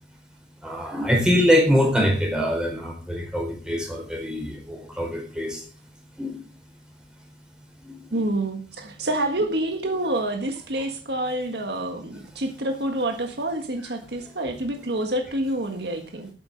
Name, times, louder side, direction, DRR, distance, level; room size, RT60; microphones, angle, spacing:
voice 1, 0.6-5.6 6.2-6.4 7.8-8.3 13.8-13.9 14.2-14.6, equal, 5° right, 1 dB, 4.3 m, -24 dB
voice 2, 8.1-16.3, right 1 dB, 65° right, 4 dB, 1.7 m, -27 dB
12.5 x 8.4 x 5.3 m, 0.40 s
head